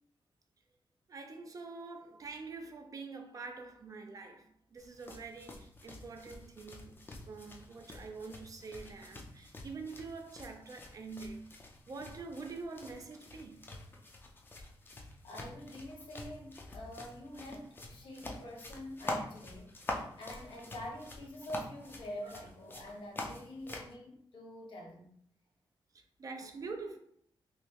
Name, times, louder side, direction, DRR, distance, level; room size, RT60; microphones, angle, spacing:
voice 1, 1.1-11.4 11.9-13.7 21.4-21.5 22.2-22.3 25.9-27.0, right 4 dB, 40° right, 0.4 m, -45 dB
sound 1, 4.8-23.9, left 2 dB, 25° left, 0.4 m, -46 dB
voice 2, 15.2-19.8 20.2-25.1, equal, 70° left, 1.0 m, -46 dB
3.2 x 2.7 x 2.9 m
wide cardioid pair, 175°, 9 cm